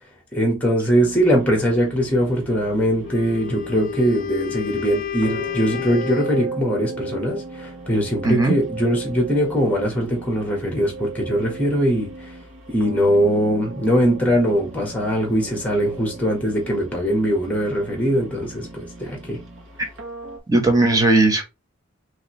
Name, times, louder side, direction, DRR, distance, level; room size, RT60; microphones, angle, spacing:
voice 1, 0.3-12.4 12.7-19.4, equal, 10° left, 1.7 m, -21 dB
sound 1, 0.9-20.4, right 3 dB, 80° right, 1.5 m, -37 dB
Wind instrument woodwind instrument, 3.0-6.5, left 10 dB, 40° left, 0.4 m, -31 dB
voice 2, 20.5-21.4, right 2 dB, 15° right, 1.1 m, -17 dB
5.5 x 3.0 x 3.2 m
head